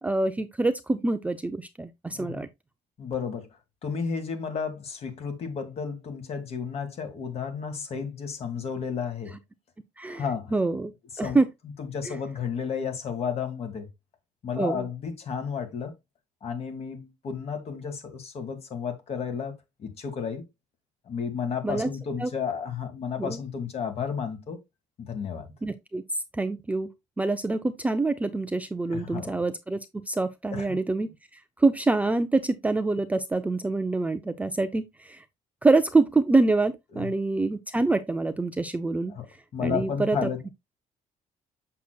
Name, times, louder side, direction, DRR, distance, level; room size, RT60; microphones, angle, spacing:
voice 1, 0.0-2.5 10.0-10.2 10.5-10.9 11.2-11.5 12.1-12.2 14.5-14.9 21.6-21.9 22.2-22.3 23.2-23.4 25.6-26.0 26.3-26.9 27.2-35.2 35.6-39.1 39.6-40.5, right 3 dB, 10° right, 0.4 m, -26 dB
voice 2, 2.1-2.4 3.0-3.5 3.8-9.3 10.0-10.5 11.2-11.4 11.8-13.9 14.4-15.9 16.4-19.5 19.8-20.4 21.1-24.6 25.0-25.5 28.9-29.4 30.5-30.7 36.9-37.1 39.1-39.3 39.5-40.4, left 6 dB, 45° left, 1.9 m, -32 dB
6.7 x 6.5 x 2.3 m
cardioid pair, 150°, 14 cm